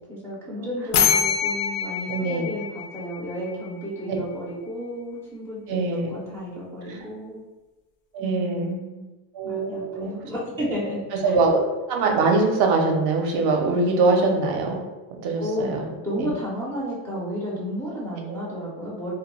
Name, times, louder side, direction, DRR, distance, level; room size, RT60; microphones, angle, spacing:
voice 1, 0.1-7.4 8.2-9.1 9.4-11.3 15.4-19.1, equal, 5° left, -7 dB, 0.3 m, -32 dB
sound 1, 0.9-3.7, left 8 dB, 85° left, 0.7 m, -25 dB
voice 2, 2.1-2.5 4.1-4.2 5.7-6.1 6.9-7.0 8.1-8.7 9.3-10.1 11.2-14.8 15.2-15.9 16.2-16.3 18.3-18.4, right 3 dB, 55° right, 2 dB, 0.5 m, -23 dB
2.2 x 2.1 x 2.9 m, 1.1 s
cardioid pair, 145°, 46 cm